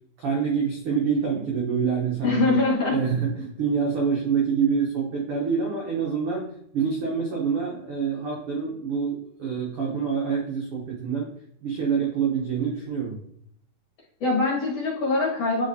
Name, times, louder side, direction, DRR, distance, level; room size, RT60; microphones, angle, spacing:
voice 1, 0.2-2.6 2.9-11.3 11.6-13.2, right 6 dB, 75° right, -2 dB, 1.3 m, -26 dB
voice 2, 2.2-3.0 14.2-15.7, left 2 dB, 55° left, -3 dB, 2.2 m, -23 dB
9.0 x 3.9 x 2.7 m, 0.69 s
omnidirectional pair, 3.8 m